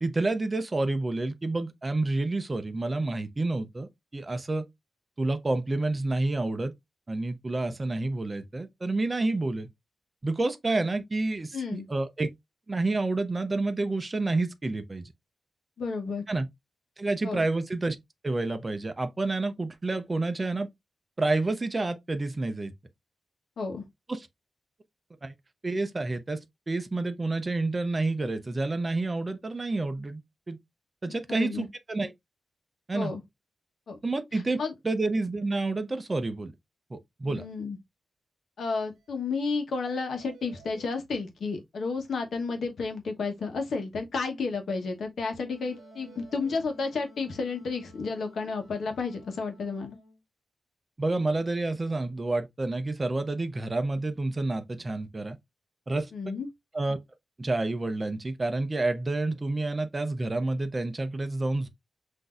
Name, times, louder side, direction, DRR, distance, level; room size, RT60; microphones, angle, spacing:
voice 1, 0.0-4.6 5.2-6.7 7.1-9.7 10.2-12.3 12.7-15.1 16.3-16.5 17.0-18.0 18.2-20.7 21.2-22.7 24.1-24.3 25.2-25.3 25.6-30.2 30.5-30.6 31.0-32.1 32.9-33.1 34.0-34.6 34.8-36.5 36.9-37.4 51.0-55.4 55.9-56.1 56.7-57.0 57.4-61.7, right 2 dB, 20° right, 0.5 m, -29 dB
voice 2, 11.5-11.9 15.8-16.2 17.2-17.4 23.6-23.8 31.1-31.7 32.9-33.2 33.9-34.0 34.3-34.7 37.3-37.8 38.6-50.0 56.1-56.5, left 4 dB, 70° left, 1.0 m, -32 dB
sound 1, 38.7-38.8 39.1-39.2 39.5-39.6 40.0-40.9 45.7-46.6, right 7 dB, 85° right, 0.7 m, -53 dB
Wind instrument woodwind instrument, 45.5-50.2, left 3 dB, 40° left, 1.6 m, -54 dB
5.8 x 2.6 x 2.4 m
wide cardioid pair, 180°, 0 cm